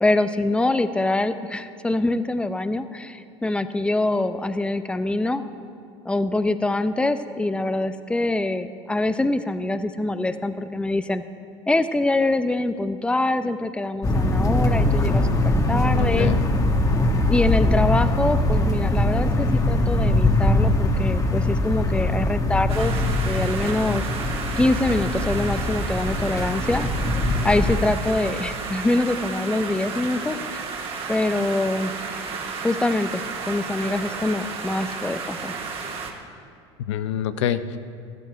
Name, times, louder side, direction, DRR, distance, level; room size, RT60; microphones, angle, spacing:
voice 1, 0.0-5.4 6.0-11.2 11.7-15.2 15.7-16.3 17.3-23.0 23.2-24.1 24.6-26.9 27.4-30.7 31.1-31.9 32.6-35.5, left 2 dB, 5° left, 11 dB, 0.6 m, -24 dB
sound 1, 14.0-27.9, left 1 dB, 20° left, 1.3 m, -22 dB
voice 2, 15.7-16.5 36.8-37.8, left 9 dB, 75° left, 11 dB, 0.6 m, -27 dB
sound 2, 22.7-36.1, right 4 dB, 40° right, 1.9 m, -32 dB
14.5 x 12.5 x 4.6 m, 2.3 s
hypercardioid pair, 80°, 15 cm